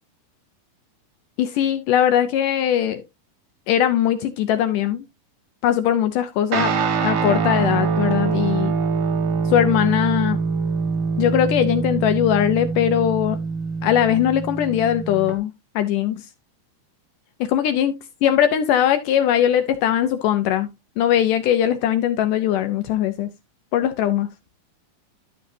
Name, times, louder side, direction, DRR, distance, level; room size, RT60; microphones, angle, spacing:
voice 1, 1.4-3.0 3.7-5.1 5.6-6.7 7.0-8.8 9.5-10.4 11.2-13.4 13.8-16.3 17.4-18.0 18.2-20.7 21.0-23.3 23.7-24.3, left 10 dB, 75° left, 2.0 m, -20 dB
Guitar, 6.5-15.3, right 5 dB, 70° right, 3.3 m, -24 dB
12.5 x 6.6 x 2.7 m
omnidirectional pair, 4.3 m